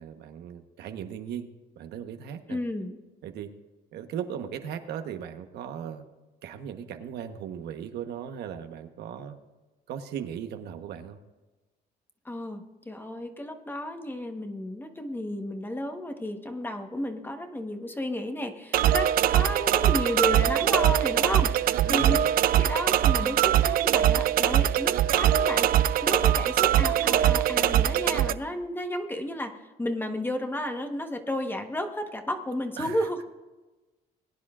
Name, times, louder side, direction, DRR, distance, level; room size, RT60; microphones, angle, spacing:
voice 1, 0.0-1.5 1.8-2.6 3.2-3.5 3.9-6.0 6.4-9.4 9.9-11.2 21.8-22.2 32.8-33.1, right 9 dB, 75° right, 7 dB, 1.2 m, -37 dB
voice 2, 2.5-3.0 12.2-33.2, left 1 dB, 10° left, 5 dB, 1.2 m, -33 dB
sound 1, 18.7-28.3, right 11 dB, 60° right, 0.5 m, -22 dB
20.0 x 10.0 x 2.5 m, 1.2 s
cardioid pair, 110°, 17 cm